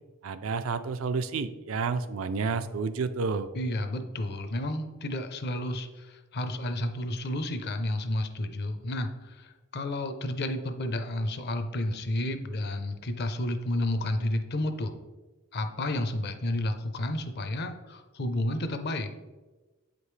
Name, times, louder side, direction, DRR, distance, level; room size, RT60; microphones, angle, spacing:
voice 1, 0.2-3.5, right 4 dB, 90° right, 11 dB, 0.4 m, -30 dB
voice 2, 3.5-14.9 15.5-19.1, left 1 dB, 55° left, 8 dB, 0.6 m, -31 dB
8.0 x 5.1 x 3.2 m, 1.2 s
head